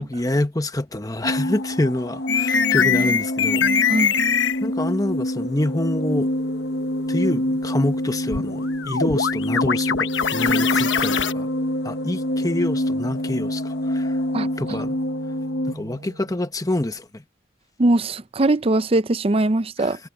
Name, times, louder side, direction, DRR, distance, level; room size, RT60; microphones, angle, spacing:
voice 1, 0.0-3.7 4.6-6.3 7.1-11.5 11.8-14.2 14.6-15.0 15.7-17.2 19.8-20.0, left 1 dB, 20° left, 1.0 m, -26 dB
sound 1, 1.2-15.7, left 1 dB, 60° left, 1.0 m, -26 dB
sound 2, 2.3-4.6 8.3-11.3, left 6 dB, 80° left, 1.2 m, -22 dB
Organ, 5.9-16.8, equal, 90° right, 7.9 m, -40 dB
voice 2, 14.3-14.8 17.8-20.0, right 2 dB, 30° right, 0.6 m, -21 dB
head